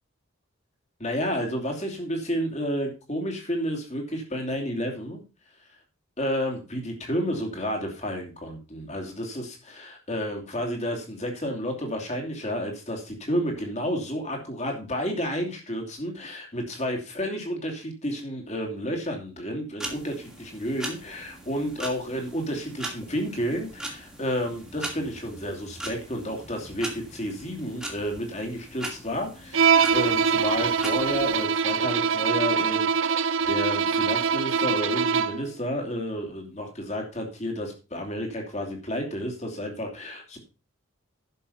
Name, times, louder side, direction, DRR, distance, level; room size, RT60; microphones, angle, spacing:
voice 1, 1.0-5.2 6.2-40.4, equal, 30° left, 2 dB, 3.0 m, -31 dB
sound 1, 19.8-31.5, right 1 dB, 5° right, 2.4 m, -40 dB
Bowed string instrument, 29.5-35.5, right 6 dB, 70° right, 0.7 m, -23 dB
11.0 x 7.0 x 5.6 m, 0.32 s
head